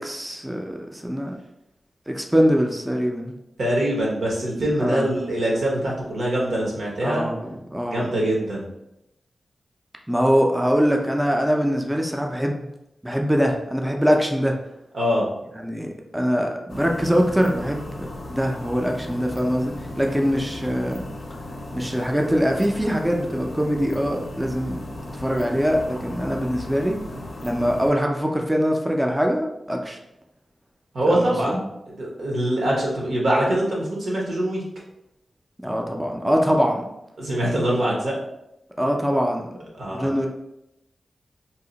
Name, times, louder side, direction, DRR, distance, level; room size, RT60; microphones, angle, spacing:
voice 1, 0.0-1.3 2.1-3.3 4.8-5.1 7.0-8.0 10.1-12.7 13.0-14.5 15.6-21.1 21.7-24.8 25.2-27.0 27.4-30.0 31.1-31.6 35.6-36.8 38.8-39.5 39.9-40.3, equal, 10° right, 1 dB, 0.4 m, -23 dB
voice 2, 3.6-7.3 7.9-8.7 14.9-15.2 30.9-34.6 37.2-38.2 39.7-40.1, right 1 dB, 80° right, -3 dB, 1.0 m, -23 dB
sound 1, 16.7-27.9, left 1 dB, 55° left, 0.5 m, -36 dB
2.8 x 2.1 x 3.8 m, 0.86 s
wide cardioid pair, 75°, 0 cm